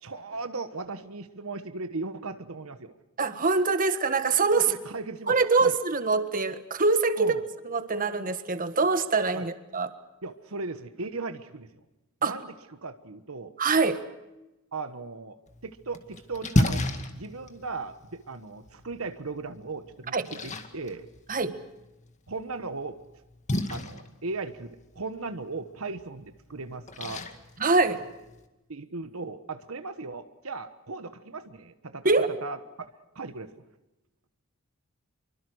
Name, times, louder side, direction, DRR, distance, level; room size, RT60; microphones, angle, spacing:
voice 1, 0.0-2.9 4.5-5.7 7.2-7.4 9.3-9.5 10.2-11.7 12.2-13.5 14.7-16.8 17.1-21.1 22.3-23.0 23.7-27.2 28.7-32.1 32.4-33.6, right 3 dB, 70° right, 9 dB, 1.3 m, -37 dB
voice 2, 3.2-4.7 5.3-7.3 7.6-9.9 12.2-12.3 13.6-14.0 20.1-20.3 21.3-21.6 27.6-28.0 32.0-32.3, right 4 dB, 40° right, 10 dB, 1.5 m, -24 dB
Splash splatter, 15.5-28.5, left 1 dB, 35° left, 2.1 m, -34 dB
26.5 x 24.5 x 6.4 m, 1.0 s
head